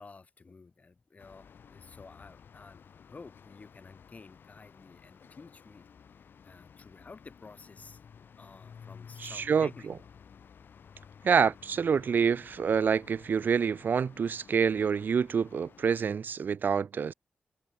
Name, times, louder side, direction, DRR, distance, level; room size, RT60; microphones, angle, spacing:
voice 1, 0.0-5.9 6.4-8.0 8.4-9.9, left 4 dB, 45° left, 3.8 m, -51 dB
sound 1, 1.2-16.0, left 7 dB, 75° left, 4.5 m, -54 dB
voice 2, 9.2-9.7 11.2-17.1, right 6 dB, 65° right, 0.4 m, -27 dB
cardioid pair, 70°, 4 cm